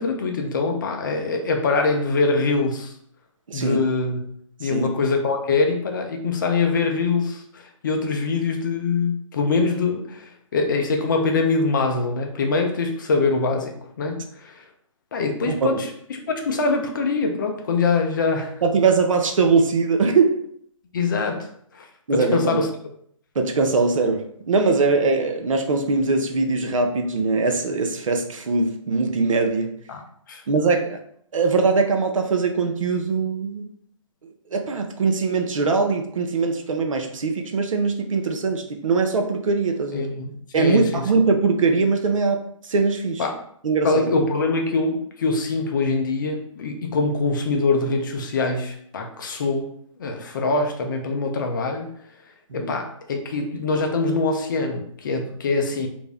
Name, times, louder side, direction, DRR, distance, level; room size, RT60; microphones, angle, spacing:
voice 1, 0.0-2.9 3.5-4.2 4.6-14.6 15.1-18.5 20.9-22.7 29.9-30.4 39.9-40.3 40.6-41.0 43.2-43.4 43.8-49.7 50.0-51.9 52.5-55.9, left 3 dB, 35° left, 3 dB, 0.4 m, -24 dB
voice 2, 3.5-3.8 4.6-4.9 15.4-15.8 18.6-20.4 22.1-22.6 23.4-29.7 30.5-31.0 31.3-33.7 34.5-40.1 40.5-43.3 43.6-44.1 52.5-52.7, right 4 dB, 70° right, 4 dB, 0.6 m, -21 dB
2.5 x 2.1 x 3.3 m, 0.66 s
hypercardioid pair, 150°, 17 cm